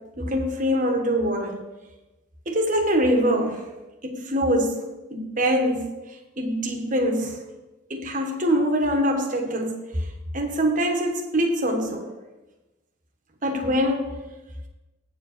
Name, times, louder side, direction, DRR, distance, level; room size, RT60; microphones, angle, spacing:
voice 1, 0.2-1.6 2.5-3.7 4.0-4.8 5.1-5.9 6.4-7.4 7.9-9.8 10.3-12.1 13.4-14.2, equal, 40° right, 1.3 m, -23 dB
8.7 x 4.8 x 6.7 m
head